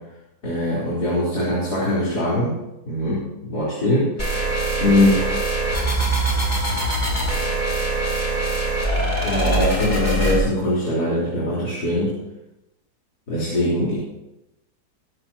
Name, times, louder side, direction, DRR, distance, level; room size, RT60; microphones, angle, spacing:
voice 1, 0.4-2.6 2.8-4.4 4.8-5.5 9.2-12.2 13.3-14.0, left 1 dB, 65° left, -8 dB, 4.6 m, -22 dB
sound 1, 4.2-10.4, right 1 dB, 25° left, 4.0 m, -22 dB
21.0 x 12.5 x 2.9 m, 0.92 s
omnidirectional pair, 1.8 m